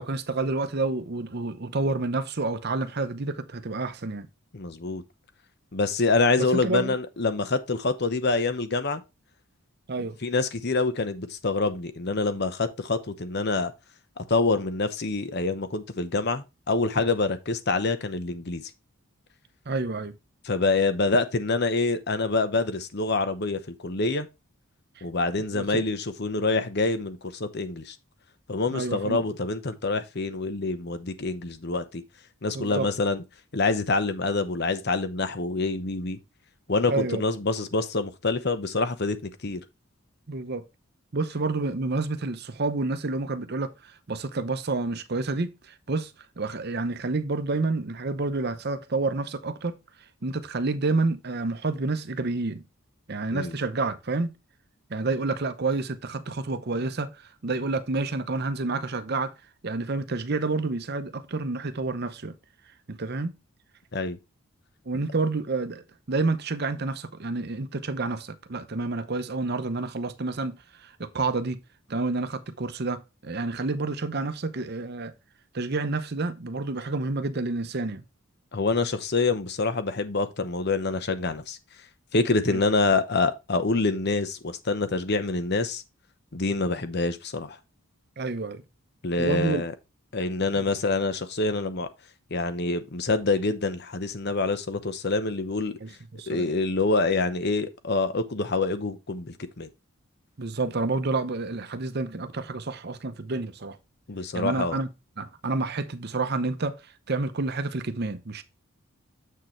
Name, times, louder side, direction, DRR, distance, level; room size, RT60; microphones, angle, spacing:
voice 1, 0.0-4.3 6.4-6.9 9.9-10.2 19.7-20.2 25.0-25.1 25.5-25.8 28.7-29.2 32.5-32.9 36.9-37.2 40.3-40.6 41.1-46.1 46.4-49.7 50.2-52.6 53.1-54.3 54.9-59.3 59.6-62.3 62.9-63.3 64.9-71.6 71.9-75.1 75.5-78.0 82.5-82.6 88.2-88.6 89.2-89.7 95.8-96.5 100.4-103.8 104.3-104.9 105.2-106.8 107.1-108.4, right 3 dB, 45° right, 0.7 m, -29 dB
voice 2, 4.5-5.0 5.7-9.0 10.2-13.7 14.2-18.6 20.4-24.3 25.0-28.0 28.5-32.0 32.4-33.2 33.5-36.2 36.7-39.6 53.3-53.5 63.9-64.2 78.5-81.6 82.1-85.8 86.3-87.6 89.0-89.7 90.1-91.9 92.3-95.8 96.3-99.7 104.1-104.8, left 3 dB, 50° left, 0.8 m, -26 dB
7.5 x 6.5 x 3.2 m
head